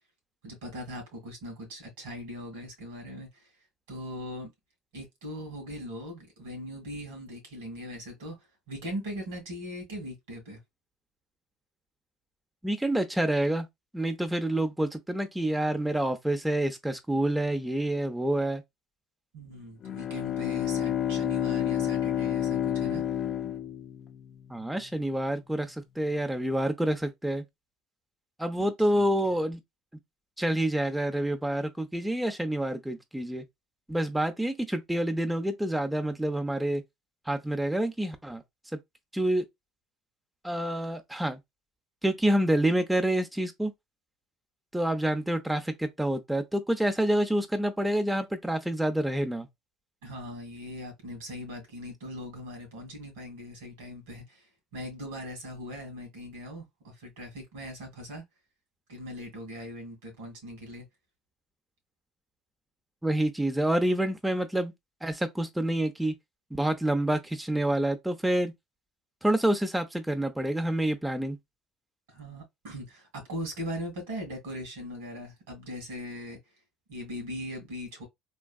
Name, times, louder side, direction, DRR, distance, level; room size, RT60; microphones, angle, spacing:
voice 1, 0.4-3.5 3.9-4.5 4.9-10.6 19.3-23.0 28.6-29.4 50.0-58.2 58.9-60.9 72.1-76.4 76.9-78.1, equal, 85° right, 1.9 m, -40 dB
voice 2, 12.6-13.7 13.9-18.6 24.5-27.4 28.4-29.6 30.4-33.4 33.9-36.8 37.3-38.4 39.1-39.4 40.4-41.4 42.0-43.7 44.7-49.5 63.0-64.7 65.0-66.1 66.5-68.5 69.2-71.4, right 1 dB, 5° right, 0.6 m, -27 dB
Bowed string instrument, 19.8-24.4, left 10 dB, 50° left, 0.4 m, -29 dB
3.5 x 2.3 x 2.3 m
hypercardioid pair, 75°, 0 cm